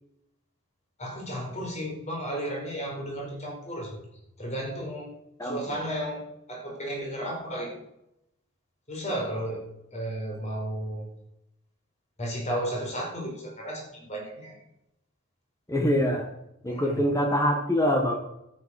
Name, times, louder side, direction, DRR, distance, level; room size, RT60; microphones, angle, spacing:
voice 1, 1.0-4.0 4.4-5.2 5.4-6.2 6.5-7.8 8.9-11.1 12.2-14.6 16.7-17.0, right 1 dB, 35° left, 0 dB, 4.5 m, -33 dB
voice 2, 5.4-5.8 15.7-16.3 16.6-18.2, equal, 15° left, 2 dB, 1.5 m, -24 dB
12.0 x 9.1 x 6.5 m, 0.83 s
head